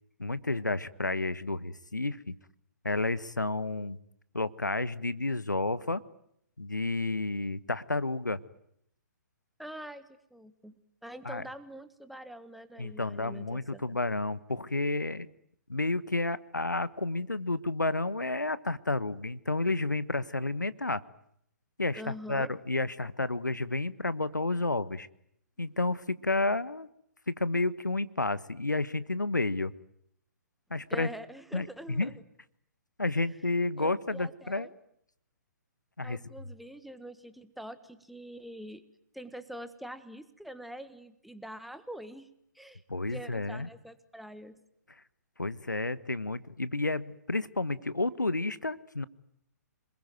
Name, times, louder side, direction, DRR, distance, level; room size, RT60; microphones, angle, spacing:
voice 1, 0.2-2.3 2.8-4.0 4.3-6.0 6.6-8.4 11.2-11.4 12.8-15.3 15.7-21.0 21.8-25.1 25.6-26.9 27.3-29.7 30.7-31.1 31.5-32.1 33.0-34.7 36.0-36.2 42.9-43.7 45.4-49.1, left 2 dB, 85° left, 18 dB, 1.3 m, -31 dB
voice 2, 9.6-10.7 11.0-13.8 21.9-22.5 30.9-32.2 33.1-33.2 33.8-34.7 36.0-38.8 39.1-42.3 42.5-44.6, equal, ahead, 11 dB, 1.5 m, -45 dB
28.0 x 21.0 x 9.3 m, 0.73 s
figure-of-eight pair, 125°, 10 cm